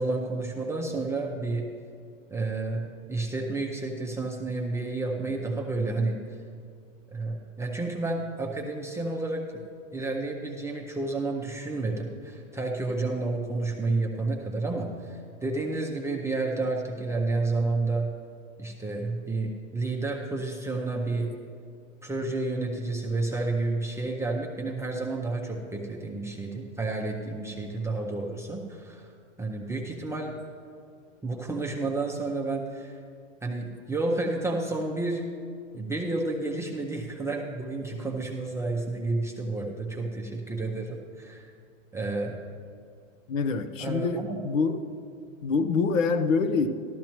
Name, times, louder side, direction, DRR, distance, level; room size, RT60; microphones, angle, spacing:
voice 1, 0.0-1.7 2.3-6.2 7.1-9.6 9.9-18.1 18.6-21.3 22.0-29.1 29.4-30.4 31.2-33.0 33.4-35.3 35.7-41.5 41.9-42.4 43.8-44.4, right 2 dB, 5° right, -1 dB, 0.6 m, -30 dB
voice 2, 43.3-44.9 45.4-46.7, left 4 dB, 75° left, 9 dB, 0.9 m, -25 dB
13.5 x 12.5 x 3.0 m, 2.4 s
hypercardioid pair, 115°, 39 cm